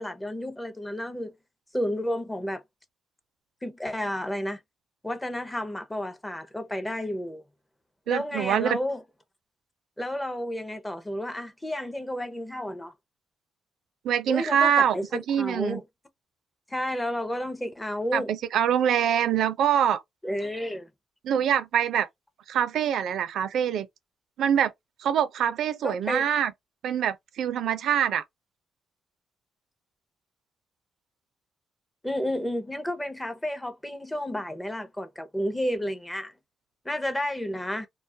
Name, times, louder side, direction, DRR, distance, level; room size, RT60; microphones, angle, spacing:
voice 1, 0.0-1.3 1.7-2.6 3.6-4.6 5.0-7.4 8.1-9.0 10.0-12.9 14.3-15.8 16.7-18.3 20.2-20.9 25.8-26.2 32.0-36.3 36.8-37.9, left 1 dB, 10° left, 0.5 m, -31 dB
voice 2, 8.1-8.8 14.0-15.8 18.1-20.0 21.2-22.1 22.5-23.9 24.4-24.7 25.0-26.5 26.8-28.2, right 9 dB, 70° right, 0.4 m, -24 dB
2.3 x 2.0 x 2.6 m
cardioid pair, 90°, 0 cm